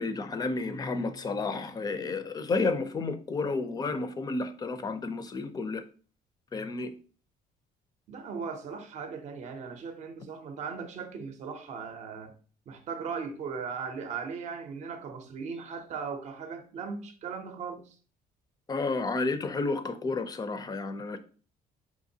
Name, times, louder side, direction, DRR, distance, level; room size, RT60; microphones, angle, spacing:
voice 1, 0.0-5.8 6.5-6.9 18.7-21.2, left 3 dB, 25° left, 0.4 m, -31 dB
voice 2, 8.1-12.3 12.7-17.9, right 5 dB, 50° right, 0.6 m, -38 dB
4.9 x 2.9 x 2.7 m
cardioid pair, 140°, 16 cm